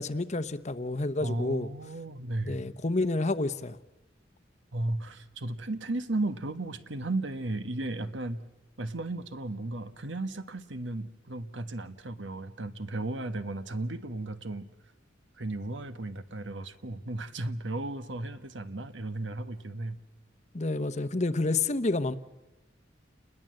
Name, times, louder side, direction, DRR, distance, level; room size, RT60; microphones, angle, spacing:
voice 1, 0.0-1.7 2.4-3.8 20.5-22.2, left 2 dB, 35° left, 0.9 m, -29 dB
voice 2, 1.2-2.6 4.7-8.4 8.8-14.7 15.4-20.0, right 2 dB, 75° right, 1.4 m, -35 dB
29.5 x 21.0 x 7.7 m
head